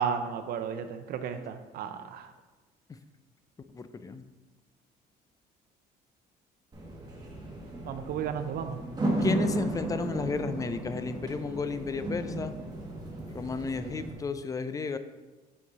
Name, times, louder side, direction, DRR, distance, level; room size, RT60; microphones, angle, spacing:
voice 1, 0.0-2.3 7.8-8.8, right 7 dB, 65° right, 9 dB, 0.6 m, -33 dB
voice 2, 3.7-4.2 9.2-12.5 13.3-15.0, left 4 dB, 20° left, 11 dB, 0.4 m, -33 dB
sound 1, 6.7-14.1, right 1 dB, 25° right, 1.4 m, -34 dB
5.5 x 5.4 x 3.9 m, 1.2 s
cardioid pair, 110°, 17 cm